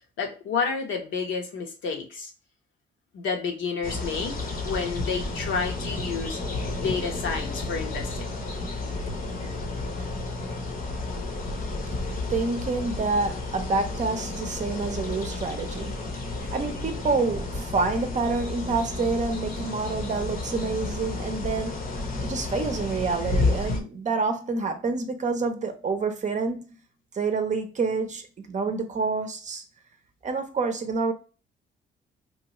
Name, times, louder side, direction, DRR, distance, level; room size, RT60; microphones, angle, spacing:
voice 1, 0.2-2.3 3.1-6.4 6.8-8.3, left 5 dB, 75° left, 0.9 m, -30 dB
sound 1, 3.8-23.8, left 2 dB, 45° left, 0.8 m, -31 dB
voice 2, 12.3-16.0 16.3-21.9 22.2-26.7 27.1-29.6 30.2-31.1, right 4 dB, 40° right, 0.6 m, -28 dB
3.0 x 2.3 x 2.9 m
cardioid pair, 90°, 20 cm